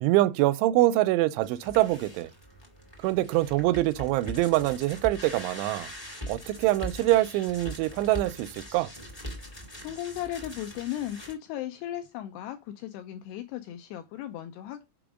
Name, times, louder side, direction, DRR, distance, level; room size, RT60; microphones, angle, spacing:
voice 1, 0.0-2.3 3.0-5.9 6.3-8.9, right 16 dB, 85° right, 3.0 m, -24 dB
sound 1, 1.4-11.3, equal, 20° left, 0.7 m, -42 dB
voice 2, 9.8-14.8, left 12 dB, 85° left, 2.4 m, -36 dB
7.0 x 5.1 x 4.9 m
omnidirectional pair, 5.4 m